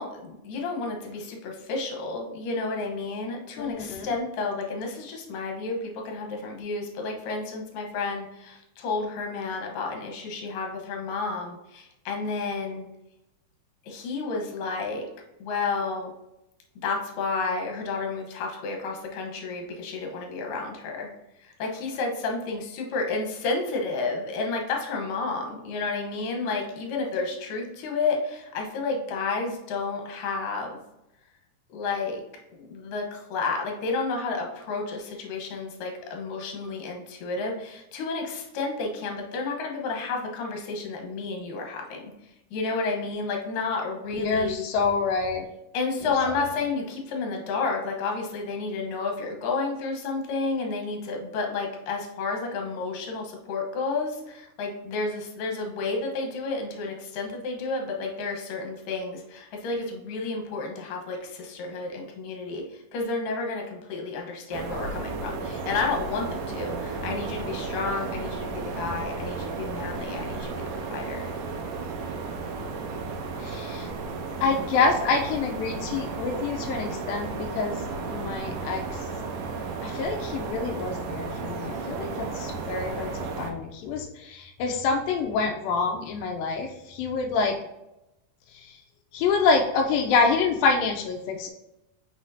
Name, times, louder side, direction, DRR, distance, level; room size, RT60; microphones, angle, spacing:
voice 1, 0.0-12.9 13.9-15.1 15.4-16.1 16.8-21.1 21.4-30.8 31.7-32.2 32.5-42.1 42.5-44.7 45.7-70.6 70.9-71.3, left 4 dB, 70° left, 1 dB, 2.3 m, -31 dB
voice 2, 3.6-4.1 44.2-45.5 73.4-73.9 74.4-77.8 78.1-79.0 79.8-83.1 83.4-87.6 88.5-88.8 89.1-91.5, left 4 dB, 85° left, 2 dB, 2.0 m, -26 dB
sound 1, 64.5-83.5, right 4 dB, 90° right, 2.8 m, -33 dB
6.2 x 5.8 x 2.7 m, 0.90 s
omnidirectional pair, 4.7 m